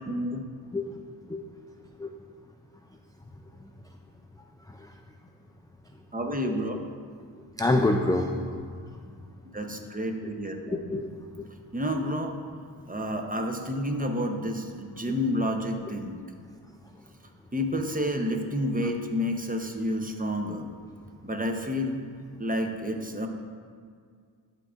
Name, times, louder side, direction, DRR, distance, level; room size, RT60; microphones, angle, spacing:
voice 1, 0.0-0.4 6.1-6.8 9.5-10.8 11.7-12.4 12.9-16.2 17.5-20.7 21.2-22.0 22.4-23.3, equal, 15° right, 4 dB, 0.8 m, -29 dB
voice 2, 7.6-8.7 10.7-11.1 11.4-11.5, left 2 dB, 10° left, 3 dB, 0.3 m, -26 dB
11.0 x 3.8 x 2.5 m, 2.1 s
cardioid pair, 40°, 48 cm